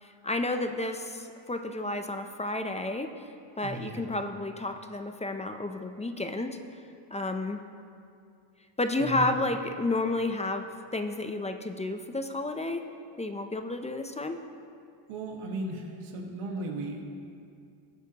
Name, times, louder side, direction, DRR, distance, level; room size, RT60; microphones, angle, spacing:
voice 1, 0.0-3.1 3.6-6.6 7.1-7.6 8.8-12.8 13.2-14.4, left 2 dB, 15° left, 6 dB, 0.4 m, -31 dB
voice 2, 3.6-4.1 9.0-9.4 15.1-17.0, right 2 dB, 85° right, 1 dB, 1.6 m, -36 dB
19.5 x 8.2 x 2.9 m, 2.4 s
cardioid pair, 120°, 50 cm